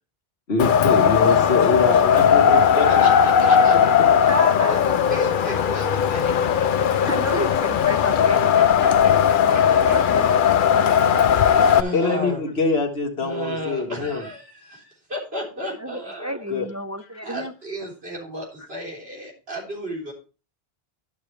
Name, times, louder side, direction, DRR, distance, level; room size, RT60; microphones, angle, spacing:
voice 1, 0.5-3.1 11.9-14.2 16.5-16.7, left 4 dB, 75° left, 1.7 m, -24 dB
Wind, 0.6-11.8, left 8 dB, 60° left, 0.7 m, -18 dB
voice 2, 2.8-6.9 8.8-9.1 9.5-10.4 11.2-12.4 13.2-16.4 17.2-20.1, right 1 dB, 75° right, 4.0 m, -33 dB
voice 3, 4.3-4.9 7.0-8.5 9.4-10.3 15.8-17.5, equal, 25° right, 0.3 m, -31 dB
12.0 x 6.6 x 3.2 m
omnidirectional pair, 1.1 m